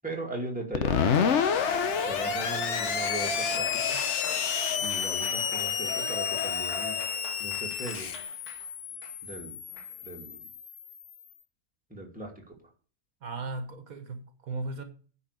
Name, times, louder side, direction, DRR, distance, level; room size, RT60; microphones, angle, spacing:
voice 1, 0.0-1.5 2.0-4.0 4.8-7.0 7.4-8.1 9.2-9.6 10.0-10.5 11.9-12.6, right 1 dB, 5° right, 2.4 m, -39 dB
Screech, 0.7-11.2, left 7 dB, 55° left, 1.1 m, -30 dB
Cheering, 0.8-8.6 9.0-9.1 9.8-9.9, left 5 dB, 75° left, 1.7 m, -35 dB
voice 2, 13.2-14.8, right 3 dB, 65° right, 1.7 m, -36 dB
9.7 x 5.5 x 8.3 m
omnidirectional pair, 1.6 m